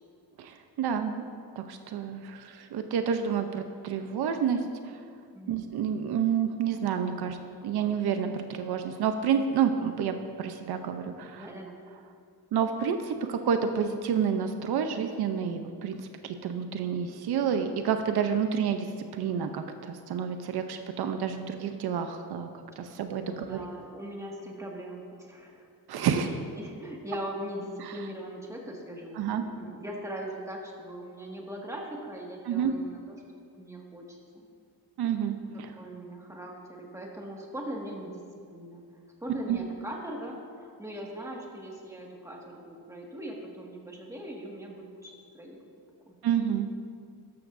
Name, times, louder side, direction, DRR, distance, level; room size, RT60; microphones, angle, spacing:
voice 1, 0.4-1.2 1.6-5.0 5.5-7.4 7.6-11.5 12.5-18.9 19.1-23.6 25.9-26.3 27.8-27.9 29.2-29.4 32.5-32.7 35.0-35.7 39.5-39.6 46.2-46.8, right 7 dB, 80° right, 7 dB, 0.8 m, -29 dB
voice 2, 11.4-11.8 22.8-25.7 26.2-33.2 33.6-34.2 35.8-38.2 38.5-38.8 39.2-45.6 46.1-46.2, equal, 10° right, -2 dB, 1.9 m, -40 dB
13.0 x 12.5 x 2.7 m, 2.2 s
cardioid pair, 115°, 38 cm